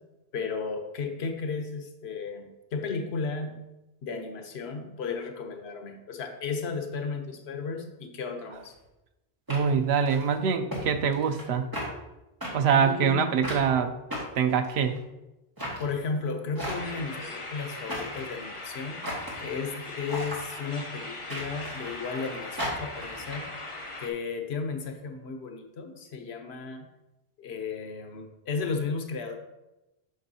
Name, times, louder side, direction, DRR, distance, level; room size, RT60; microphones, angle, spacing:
voice 1, 0.3-3.6 4.0-8.7 12.8-13.4 15.8-19.0 19.4-23.5 24.0-26.9 27.4-29.4, left 4 dB, 90° left, 5 dB, 1.0 m, -34 dB
sound 1, 8.5-8.7 9.5-10.3 10.7-10.8 11.1-11.5 11.7-11.9 12.4-12.5 13.4-13.6 14.1-15.0 15.6-15.8 16.5-17.1 17.9-18.3 19.0-19.4 20.1-20.4 21.3-22.0 22.6-23.4, equal, 20° right, 1.6 m, -35 dB
voice 2, 9.5-11.7 12.5-14.0 14.4-15.0, right 6 dB, 90° right, 8 dB, 0.8 m, -24 dB
sound 2, 16.6-24.1, left 2 dB, 35° left, 0.7 m, -40 dB
7.7 x 6.1 x 2.7 m, 0.98 s
omnidirectional pair, 1.0 m